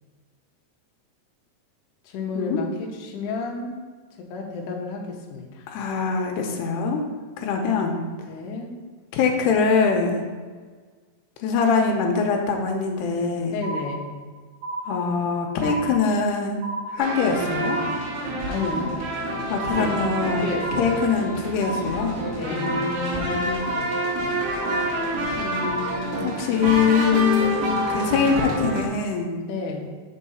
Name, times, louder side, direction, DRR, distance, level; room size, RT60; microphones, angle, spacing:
voice 1, 2.0-3.8 4.2-5.7 8.3-8.7 13.5-14.3 18.5-18.9 19.7-20.0 20.4-21.0 22.4-22.9 29.3-29.9, left 4 dB, 70° left, 0 dB, 2.1 m, -32 dB
voice 2, 5.7-7.0 7.4-8.0 9.1-10.2 11.4-13.6 14.9-16.6 16.9-17.8 19.5-22.1 22.5-23.7 25.4-29.3, left 5 dB, 90° left, 2 dB, 2.8 m, -23 dB
sound 1, 13.6-14.3 14.6-15.3 15.6-16.3 16.6-17.3 17.6-18.3 18.6-19.3 19.6-20.3 20.6-21.3 21.6-22.3 22.6-23.3 23.6-24.3 24.6-25.3 25.6-26.3 26.6-27.3 27.6-28.3, right 1 dB, 70° right, 2.3 m, -33 dB
sound 2, 17.0-28.9, right 1 dB, 85° right, 3.2 m, -28 dB
6.2 x 4.7 x 5.5 m, 1.5 s
omnidirectional pair, 4.7 m